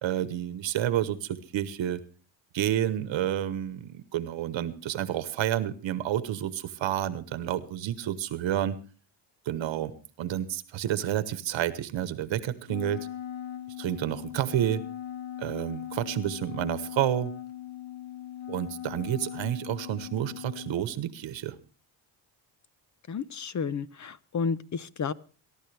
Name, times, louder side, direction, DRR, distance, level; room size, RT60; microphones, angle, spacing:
voice 1, 0.0-2.0 2.5-8.8 9.5-9.9 10.2-13.1 13.8-14.8 15.4-17.3 18.5-21.6, right 11 dB, 75° right, 14 dB, 1.2 m, -30 dB
Wind instrument woodwind instrument, 12.6-20.8, left 11 dB, 85° left, 1.7 m, -39 dB
voice 2, 23.1-25.1, left 5 dB, 40° left, 16 dB, 0.9 m, -31 dB
23.0 x 11.5 x 3.4 m, 0.36 s
cardioid pair, 85°, 46 cm